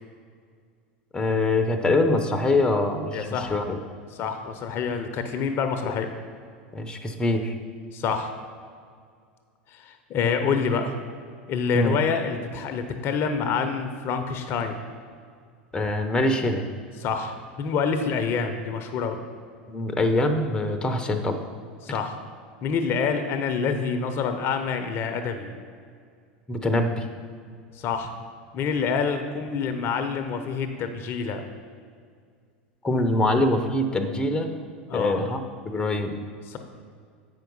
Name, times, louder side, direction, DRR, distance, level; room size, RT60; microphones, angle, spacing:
voice 1, 1.1-3.8 6.7-7.6 11.7-12.0 15.7-16.6 19.7-21.4 26.5-27.1 32.8-34.5 34.9-35.4 35.6-36.2, left 2 dB, 15° left, 5 dB, 0.8 m, -24 dB
voice 2, 3.1-3.6 4.2-6.1 7.9-8.3 9.7-11.0 11.5-14.8 17.0-19.2 21.8-22.1 22.6-25.5 27.8-28.1 28.5-31.4 34.9-35.2 36.5-36.6, left 5 dB, 45° left, 7 dB, 0.7 m, -27 dB
7.7 x 5.8 x 5.4 m, 2.1 s
hypercardioid pair, 90°, 5 cm